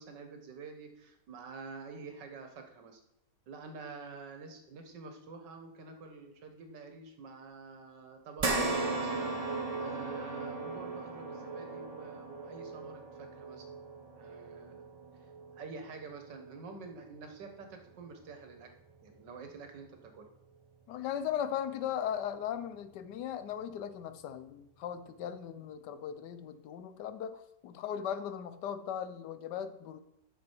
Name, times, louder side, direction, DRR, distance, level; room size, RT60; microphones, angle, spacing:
voice 1, 0.0-3.0 3.5-13.8 14.2-14.9 15.5-18.7 19.0-20.3, right 4 dB, 80° right, 5 dB, 1.9 m, -48 dB
sound 1, 8.4-17.0 17.4-17.6 19.0-19.1, right 3 dB, 30° right, 0.8 m, -37 dB
voice 2, 20.9-30.0, left 9 dB, 80° left, 12 dB, 1.2 m, -38 dB
9.5 x 6.4 x 4.5 m, 0.82 s
omnidirectional pair, 1.9 m